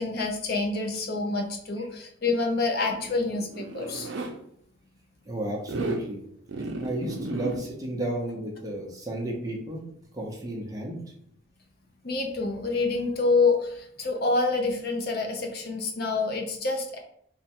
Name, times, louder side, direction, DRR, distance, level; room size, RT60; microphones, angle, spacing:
voice 1, 0.0-4.1 12.0-17.0, left 3 dB, 50° left, 2 dB, 0.5 m, -27 dB
Zipper (clothing), 2.7-4.3 5.6-6.1 6.5-7.6, right 3 dB, 60° right, 0.5 m, -33 dB
voice 2, 5.3-6.2 6.8-9.9 10.1-11.0, right 1 dB, 15° right, -1 dB, 0.6 m, -33 dB
3.4 x 2.1 x 4.3 m, 0.69 s
head